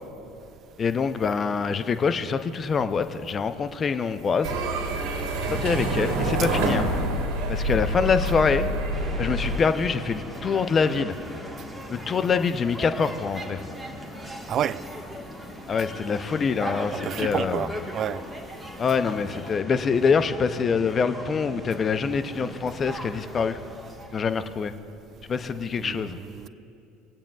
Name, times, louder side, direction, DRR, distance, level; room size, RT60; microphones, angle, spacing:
voice 1, 0.8-4.6 5.5-6.9 7.5-8.7 9.2-11.2 11.9-13.6 15.7-17.7 18.8-23.6 24.1-24.7 25.3-26.2, left 5 dB, 35° left, 0.6 m, -25 dB
sound 1, 4.4-9.6, right 1 dB, 65° right, 1.8 m, -26 dB
sound 2, 8.9-24.2, equal, ahead, 1.5 m, -39 dB
voice 2, 14.5-14.8 16.9-18.2 25.8-26.5, right 10 dB, 50° right, 0.3 m, -30 dB
24.5 x 8.7 x 2.4 m
hypercardioid pair, 75°, 0 cm